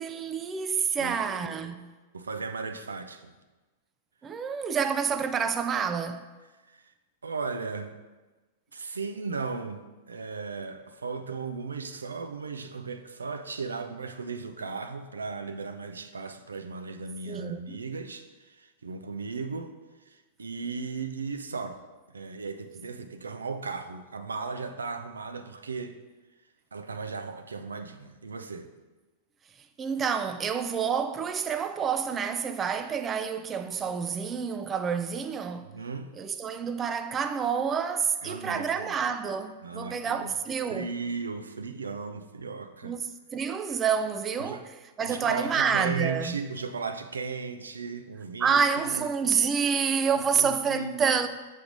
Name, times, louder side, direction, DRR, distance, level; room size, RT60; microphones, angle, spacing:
voice 1, 0.0-1.9 4.2-6.3 17.3-17.8 29.8-35.7 36.2-40.9 42.8-44.6 45.0-46.4 48.4-51.3, right 6 dB, 25° right, 0.4 m, -28 dB
voice 2, 1.0-1.7 2.1-3.3 6.7-6.9 7.2-8.0 8.7-19.7 20.1-21.9 22.1-26.0 26.7-28.7 35.6-36.1 38.2-38.9 39.6-40.3 40.7-43.0 44.4-44.7 45.0-48.6 48.8-49.1 50.3-51.2, right 4 dB, 80° right, 0.5 m, -36 dB
7.0 x 3.2 x 5.1 m
figure-of-eight pair, 100°, 0 cm